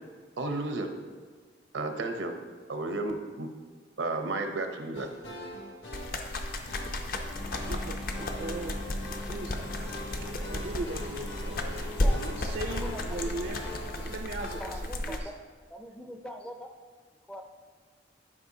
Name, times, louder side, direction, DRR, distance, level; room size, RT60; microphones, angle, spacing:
voice 1, 0.4-0.9 1.7-2.4 2.7-3.5 4.0-5.1, right 2 dB, 85° right, 5 dB, 0.7 m, -32 dB
sound 1, 4.9-14.9, equal, 70° left, 1.5 m, -45 dB
sound 2, 5.9-15.2, left 1 dB, 50° left, 0.6 m, -34 dB
Engine / Mechanisms, 7.3-14.2, left 2 dB, 90° left, 0.9 m, -42 dB
voice 2, 7.7-8.8 9.2-13.7 14.0-15.3, right 3 dB, 60° right, 4 dB, 0.4 m, -39 dB
voice 3, 12.0-12.5 12.8-13.2 14.6-15.4 15.7-16.7 17.3-17.4, equal, 5° left, 4 dB, 0.4 m, -42 dB
11.0 x 5.0 x 2.7 m, 1.5 s
head